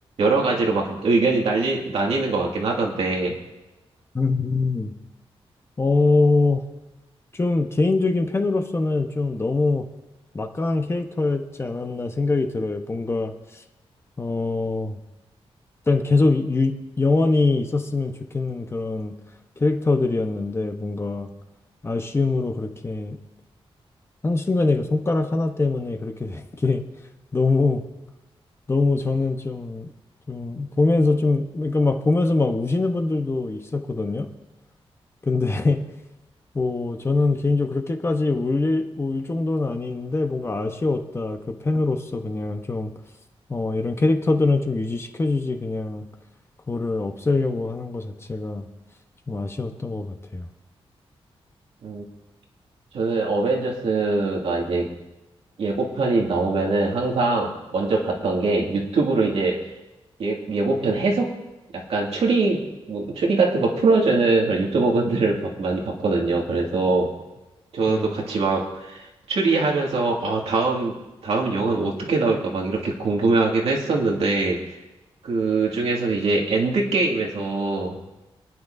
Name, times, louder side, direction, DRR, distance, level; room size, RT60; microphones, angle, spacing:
voice 1, 0.2-3.3 51.8-52.0 52.9-54.9 55.6-59.6 60.2-61.3 61.7-67.1 67.7-71.0 71.2-74.6 75.2-78.0, right 3 dB, 85° right, -1 dB, 2.3 m, -22 dB
voice 2, 4.1-4.9 5.8-6.6 7.3-9.9 10.3-13.6 14.2-15.0 15.9-19.1 19.6-21.3 21.8-23.2 24.2-26.8 27.3-27.8 28.7-29.9 30.3-34.3 35.2-35.9 36.5-42.9 43.5-46.1 46.7-48.7 49.3-50.5 67.9-68.1, left 3 dB, 25° left, 5 dB, 1.0 m, -23 dB
25.5 x 9.7 x 2.7 m, 1.1 s
wide cardioid pair, 120°, 10 cm